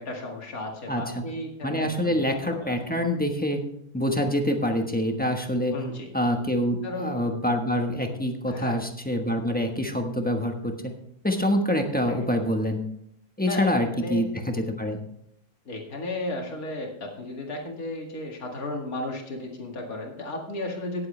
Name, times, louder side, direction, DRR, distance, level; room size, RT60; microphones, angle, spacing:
voice 1, 0.0-2.2 2.5-2.8 5.7-6.1 6.8-7.1 8.5-8.8 12.1-12.2 13.5-14.2 15.7-21.1, left 1 dB, 55° left, 1 dB, 2.5 m, -34 dB
voice 2, 0.9-1.3 1.6-3.6 3.9-5.8 6.1-10.9 11.2-12.8 13.4-15.0, equal, 5° left, 3 dB, 1.0 m, -26 dB
18.0 x 7.7 x 3.3 m, 0.73 s
omnidirectional pair, 1.8 m